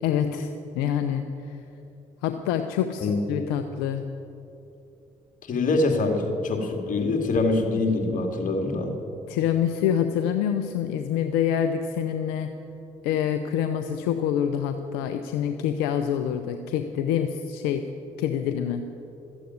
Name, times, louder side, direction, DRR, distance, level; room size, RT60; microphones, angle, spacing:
voice 1, 0.0-1.6 2.2-4.1 9.3-12.5 13.0-17.9 18.2-18.8, left 9 dB, 90° left, 8 dB, 0.6 m, -26 dB
voice 2, 5.5-8.9, left 3 dB, 55° left, 3 dB, 2.4 m, -24 dB
13.0 x 8.3 x 9.4 m, 2.8 s
supercardioid pair, 60°, 16 cm